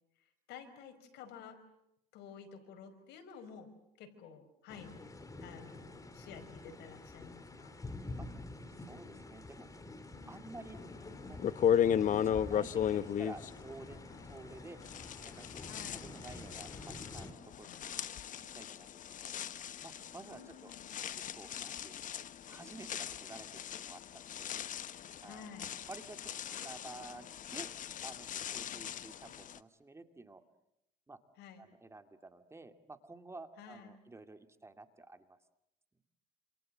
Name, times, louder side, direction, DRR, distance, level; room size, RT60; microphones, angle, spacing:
voice 1, 0.5-1.6 2.1-3.7 4.0-5.1 5.4-7.7 10.1-10.5 15.6-16.1 17.6-17.8 20.2-20.9 25.2-25.7 28.7-28.9 31.4-31.7 33.6-33.9, left 7 dB, 85° left, 8 dB, 5.1 m, -52 dB
sound 1, 4.7-17.3, left 2 dB, 20° left, 3.6 m, -48 dB
voice 2, 8.8-9.7 10.3-10.8 11.2-14.8 15.3-15.4 15.9-19.4 19.8-20.7 21.1-24.5 25.2-25.4 25.9-27.8 28.0-30.4 31.1-31.2 31.6-35.4, right 3 dB, 15° right, 8 dB, 2.4 m, -52 dB
sound 2, 10.9-11.0 11.4-14.5 14.8-29.6, left 9 dB, 50° left, 1.1 m, -36 dB
28.5 x 27.5 x 7.6 m, 0.81 s
cardioid pair, 110°, 17 cm